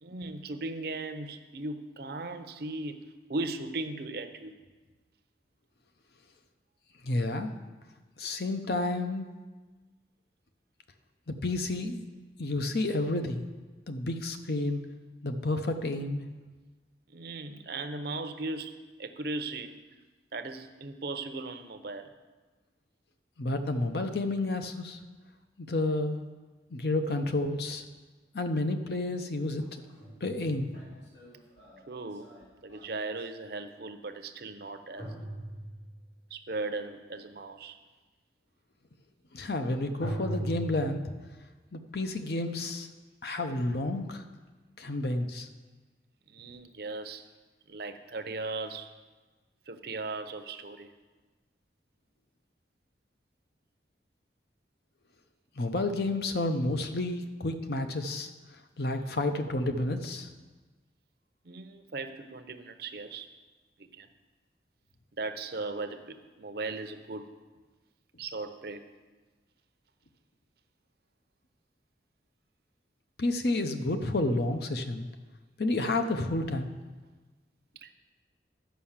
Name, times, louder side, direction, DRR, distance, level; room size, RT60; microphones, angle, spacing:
voice 1, 0.0-3.0 3.3-4.5 17.1-19.7 20.3-22.1 31.9-32.3 32.6-35.1 36.3-37.8 46.3-47.2 47.7-48.9 49.7-50.9 61.4-63.3 63.8-64.1 65.2-67.3 68.2-68.8 77.8-77.9, right 3 dB, 60° right, 8 dB, 0.7 m, -37 dB
voice 2, 7.0-7.5 8.2-9.3 11.3-12.0 12.4-13.4 13.9-14.8 15.2-16.2 23.4-25.0 25.6-26.2 26.7-27.8 28.3-29.6 30.2-30.7 39.3-41.0 41.7-42.9 43.2-44.2 44.8-45.5 55.6-58.3 58.8-60.3 73.2-75.1 75.6-76.7, left 2 dB, 60° left, 7 dB, 0.8 m, -30 dB
sound 1, 29.6-33.2 35.0-36.1 40.0-40.7, right 1 dB, 80° left, 2.8 m, -39 dB
11.5 x 5.6 x 7.3 m, 1.3 s
head